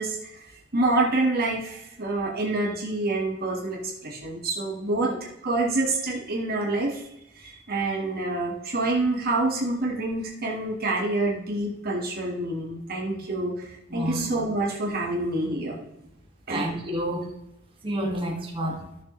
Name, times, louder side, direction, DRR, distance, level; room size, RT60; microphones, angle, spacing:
voice 1, 0.0-7.0 7.3-15.8 16.5-16.7, right 2 dB, 45° right, -1 dB, 1.5 m, -27 dB
voice 2, 13.9-14.3 16.5-17.3 17.8-18.8, right 1 dB, 25° right, -1 dB, 1.8 m, -29 dB
13.5 x 6.8 x 3.1 m, 0.86 s
head